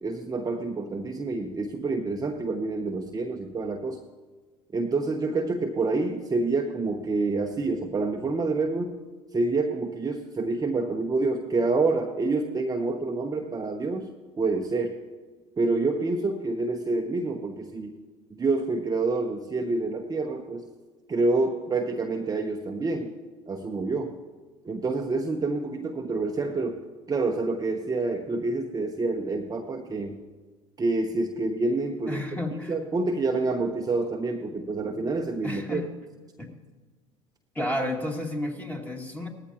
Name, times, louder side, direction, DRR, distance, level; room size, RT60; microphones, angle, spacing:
voice 1, 0.0-4.0 4.7-9.0 9.3-14.1 14.4-15.0 15.6-17.9 18.4-20.7 21.1-23.1 23.5-24.1 24.6-26.8 27.1-30.1 30.8-32.2 32.6-35.8, right 3 dB, 20° right, 3 dB, 1.0 m, -27 dB
voice 2, 32.1-32.7 35.4-35.9 36.4-36.5 37.5-39.3, left 1 dB, 10° left, 1 dB, 2.3 m, -31 dB
18.5 x 14.0 x 3.0 m, 1.3 s
hypercardioid pair, 70°, 17 cm